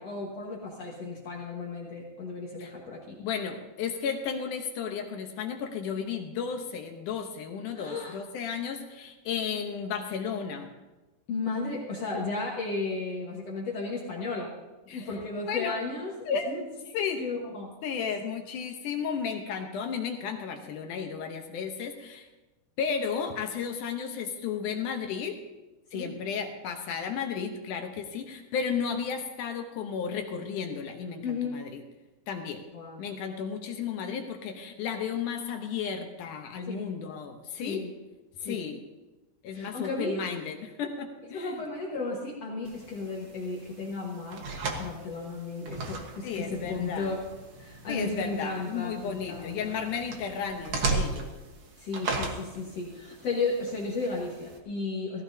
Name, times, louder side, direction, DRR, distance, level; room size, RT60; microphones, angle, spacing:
voice 1, 0.0-3.2 7.7-8.2 11.3-14.5 14.9-16.2 16.5-16.7 17.1-17.8 25.9-26.1 31.2-31.6 32.7-33.0 36.6-36.8 37.5-37.9 38.4-38.6 39.5-40.2 41.3-44.5 44.8-47.2 47.6-49.8 51.8-55.2, left 3 dB, 55° left, -3 dB, 2.1 m, -34 dB
voice 2, 3.2-10.7 14.9-15.1 15.5-15.8 16.3-16.5 16.9-17.2 17.8-22.3 22.8-25.4 25.9-31.8 32.3-32.6 33.0-37.8 38.4-38.8 39.4-41.6 46.2-47.1 47.9-51.3, left 6 dB, 70° left, 4 dB, 2.2 m, -33 dB
sound 1, 42.6-54.6, right 3 dB, 55° right, 1.4 m, -37 dB
17.0 x 15.0 x 2.8 m, 1.1 s
omnidirectional pair, 4.3 m